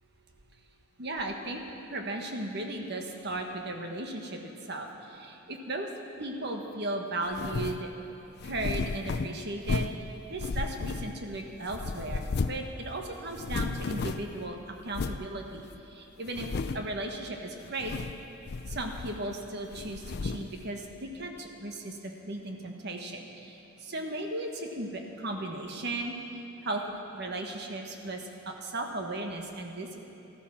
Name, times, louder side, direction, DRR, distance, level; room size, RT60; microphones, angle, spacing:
voice 1, 1.0-1.6 1.9-5.9 6.2-7.9 8.4-9.9 10.3-16.5 16.7-18.0 18.7-26.8 27.1-30.0, right 2 dB, 55° right, 3 dB, 1.4 m, -36 dB
sound 1, 7.3-7.9 8.4-10.1 10.4-11.4 11.7-12.7 13.0-13.1 13.3-14.4 14.9-15.3 15.7-15.8 16.3-16.9 17.7-18.2 18.5-19.4 19.7-20.5, left 4 dB, 50° left, 0.4 m, -33 dB
14.5 x 13.5 x 6.0 m, 3.0 s
head